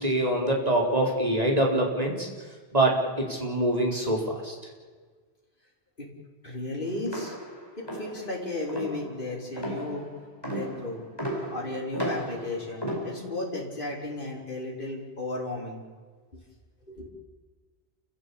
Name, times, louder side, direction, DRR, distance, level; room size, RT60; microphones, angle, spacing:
voice 1, 0.0-2.3 2.7-4.5, right 1 dB, 40° right, -1 dB, 4.7 m, -25 dB
voice 2, 6.4-7.4 7.8-10.0 10.4-15.8 16.3-16.4 16.9-17.1, left 2 dB, 55° left, -3 dB, 5.1 m, -34 dB
sound 1, 7.1-13.5, equal, 25° left, 5.1 m, -35 dB
29.0 x 15.5 x 8.7 m, 1.5 s
omnidirectional pair, 1.1 m